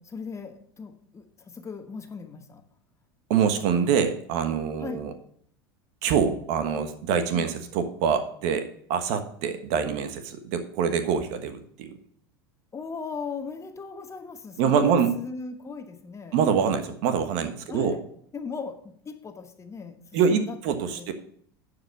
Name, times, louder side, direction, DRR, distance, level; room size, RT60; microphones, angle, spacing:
voice 1, 0.0-2.6 4.8-5.1 7.3-7.5 12.7-16.4 17.7-18.1 18.3-21.1, left 4 dB, 25° left, 7 dB, 1.2 m, -38 dB
voice 2, 3.3-5.1 6.0-11.9 14.6-15.1 16.3-18.0 20.1-21.1, right 7 dB, 60° right, 8 dB, 1.3 m, -25 dB
10.5 x 5.0 x 6.1 m, 0.62 s
hypercardioid pair, 90°, 13 cm